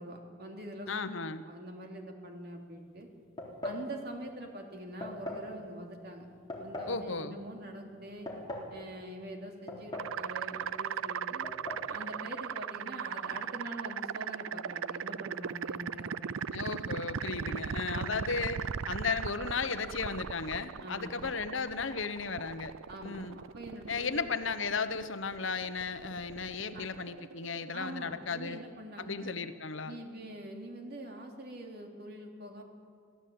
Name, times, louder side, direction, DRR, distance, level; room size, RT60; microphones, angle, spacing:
voice 1, 0.0-1.2 1.5-3.1 3.6-6.3 6.6-8.3 8.7-11.5 11.9-16.6 17.4-18.2 20.8-21.1 22.9-24.2 26.7-26.9 27.7-29.4 29.8-32.6, right 1 dB, 50° right, 2 dB, 3.2 m, -44 dB
voice 2, 0.9-1.4 6.9-7.4 16.5-22.7 23.0-23.4 23.9-28.6 29.0-30.0, left 5 dB, 70° left, 11 dB, 1.1 m, -35 dB
sound 1, 3.4-3.9 5.0-5.5 6.5-7.0 8.0-8.7 9.7-10.2 10.5-10.6 11.4-11.9, left 1 dB, 20° left, 3.7 m, -39 dB
sound 2, 9.9-28.7, right 7 dB, 80° right, 0.5 m, -39 dB
24.0 x 16.0 x 8.8 m, 2.1 s
head